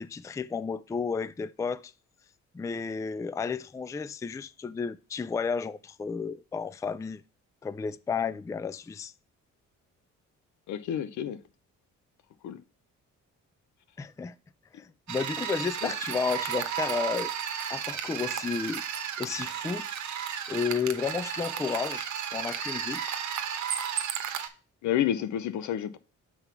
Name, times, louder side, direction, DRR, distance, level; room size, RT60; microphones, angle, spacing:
voice 1, 0.0-1.9 2.5-7.2 7.6-9.1 14.0-14.3 14.7-17.3 17.7-18.8 19.2-19.9 20.5-23.0, left 5 dB, 10° left, 0.3 m, -32 dB
voice 2, 10.7-11.4 12.4-12.6 15.8-15.9 24.8-26.0, left 10 dB, 80° left, 0.7 m, -29 dB
sound 1, 15.1-24.5, right 9 dB, 75° right, 1.0 m, -33 dB
5.9 x 4.4 x 5.7 m
cardioid pair, 85°, 29 cm